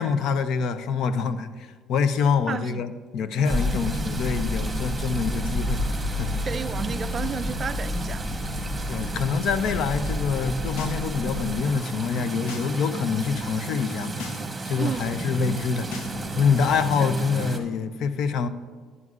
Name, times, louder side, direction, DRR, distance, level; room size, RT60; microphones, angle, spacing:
voice 1, 0.0-5.8 6.1-6.4 8.9-14.2 14.6-15.9 16.4-18.5, left 6 dB, 70° left, 0.5 m, -26 dB
voice 2, 2.5-2.8 6.4-8.3 14.8-15.1 17.0-17.1, right 6 dB, 40° right, 0.3 m, -32 dB
sound 1, 3.4-17.6, right 2 dB, 15° right, 1.1 m, -33 dB
sound 2, 3.5-11.5, left 1 dB, 30° left, 0.9 m, -30 dB
sound 3, 10.6-11.0 11.3-12.7 13.0-13.4 13.9-14.4 14.7-16.8, left 4 dB, 90° left, 1.0 m, -41 dB
11.0 x 10.5 x 2.4 m
cardioid pair, 105°, 0 cm